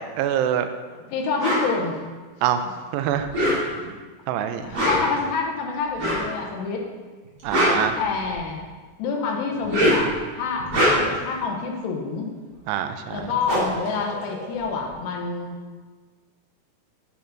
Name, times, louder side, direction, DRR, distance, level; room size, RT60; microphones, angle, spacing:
voice 1, 0.2-0.7 2.4-2.7 2.9-3.3 4.3-4.7 7.4-8.0 12.7-13.3, right 10 dB, 85° right, 9 dB, 2.7 m, -24 dB
voice 2, 1.1-2.0 4.6-6.8 8.0-8.6 9.0-12.3 13.1-15.6, left 4 dB, 90° left, 1 dB, 3.1 m, -27 dB
sound 1, 1.4-1.7 3.2-3.9 4.6-5.2 6.0-6.3 7.2-8.5 9.5-10.2 10.6-11.3 12.8-12.9 13.1-14.8, equal, 40° right, 1.5 m, -23 dB
9.2 x 6.9 x 3.9 m, 1.4 s
omnidirectional pair, 4.8 m